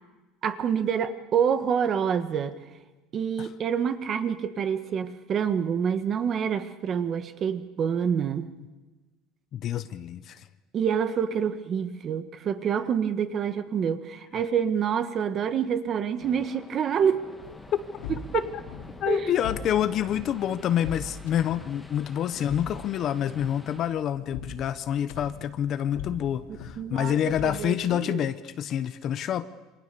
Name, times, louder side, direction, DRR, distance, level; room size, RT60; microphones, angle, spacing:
voice 1, 0.4-2.5 3.1-8.5 10.7-17.2 18.3-18.5 19.1-19.3 26.5-28.2, right 7 dB, 30° right, 10 dB, 1.5 m, -27 dB
voice 2, 9.5-10.4 19.0-29.4, left 10 dB, 35° left, 12 dB, 0.9 m, -27 dB
sound 1, 16.2-23.8, left 1 dB, 5° left, 2.1 m, -47 dB
sound 2, 17.4-28.0, left 7 dB, 90° left, 4.1 m, -42 dB
28.0 x 26.5 x 6.9 m, 1.2 s
cardioid pair, 175°, 0 cm